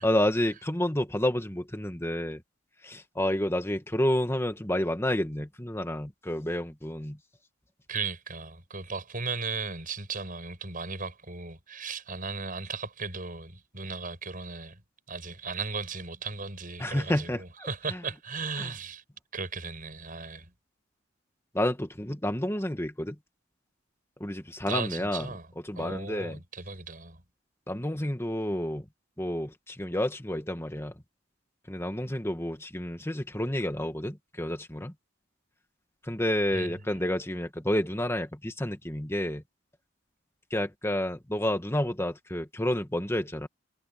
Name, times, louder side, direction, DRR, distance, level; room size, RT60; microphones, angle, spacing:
voice 1, 0.0-2.4 2.8-7.2 16.8-18.0 18.6-18.7 21.5-23.2 24.2-25.3 25.6-26.4 27.7-28.9 29.2-30.9 31.7-34.9 36.0-39.4 40.5-43.5, left 1 dB, 15° left, 1.8 m, -30 dB
voice 2, 7.9-14.8 15.1-19.0 19.3-20.5 24.7-25.5 25.8-27.2 36.5-36.7, right 4 dB, 45° right, 7.6 m, -36 dB
head